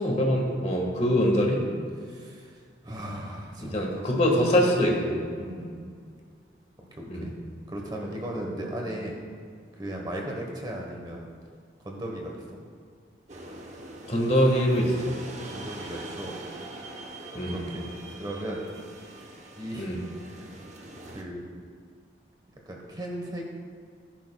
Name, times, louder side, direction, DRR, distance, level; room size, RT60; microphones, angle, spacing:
voice 1, 0.0-1.6 3.7-5.2 7.1-7.3 14.1-15.1 17.4-17.6 19.8-20.0, equal, 35° left, 0 dB, 1.6 m, -23 dB
voice 2, 2.0-2.5 2.8-4.1 5.4-5.9 6.8-7.3 7.7-9.2 9.8-11.3 11.8-12.6 15.5-16.4 17.3-17.9 18.2-18.6 19.6-20.0 20.3-20.5 21.1-21.6 22.7-23.4, right 1 dB, 20° right, 0 dB, 1.1 m, -36 dB
sound 1, 13.3-21.2, right 2 dB, 40° right, 0.9 m, -43 dB
15.0 x 10.5 x 2.3 m, 2.1 s
head